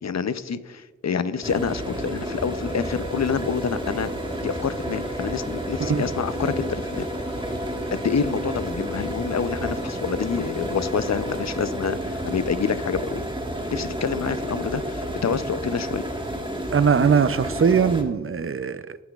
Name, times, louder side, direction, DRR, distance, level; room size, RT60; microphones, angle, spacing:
voice 1, 0.0-7.1 7.9-13.2 13.7-16.0, left 6 dB, 60° left, 0.6 m, -27 dB
sound 1, 1.4-18.0, right 1 dB, 15° right, 1.4 m, -31 dB
sound 2, 2.7-11.7, left 1 dB, 20° left, 2.2 m, -40 dB
voice 2, 16.7-19.0, right 6 dB, 45° right, 0.5 m, -21 dB
16.5 x 5.9 x 2.4 m
cardioid pair, 40°, 31 cm